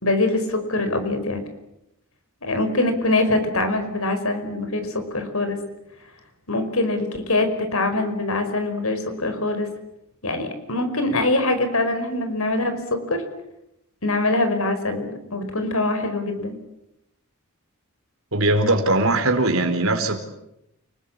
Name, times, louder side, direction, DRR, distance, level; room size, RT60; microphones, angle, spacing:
voice 1, 0.0-1.4 2.4-5.6 6.5-9.7 10.2-13.2 14.0-16.6, left 2 dB, 80° left, 8 dB, 5.1 m, -23 dB
voice 2, 18.3-20.2, right 2 dB, 75° right, 6 dB, 4.3 m, -20 dB
30.0 x 19.5 x 8.8 m, 0.85 s
head